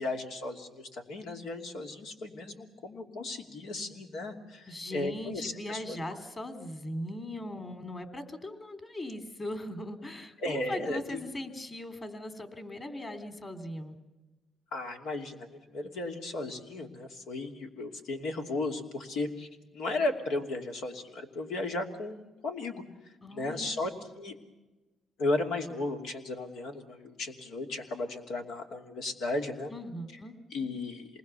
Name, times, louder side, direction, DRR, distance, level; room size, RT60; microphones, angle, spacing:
voice 1, 0.0-6.0 10.4-11.2 14.7-22.8 23.3-23.9 24.2-24.4 25.2-29.7 30.5-31.1, left 2 dB, 85° left, 3 dB, 2.8 m, -35 dB
voice 2, 4.7-14.0 23.2-23.8 29.7-30.3, left 1 dB, 30° left, 9 dB, 3.2 m, -39 dB
27.5 x 20.5 x 7.0 m, 1.1 s
cardioid pair, 90°, 0 cm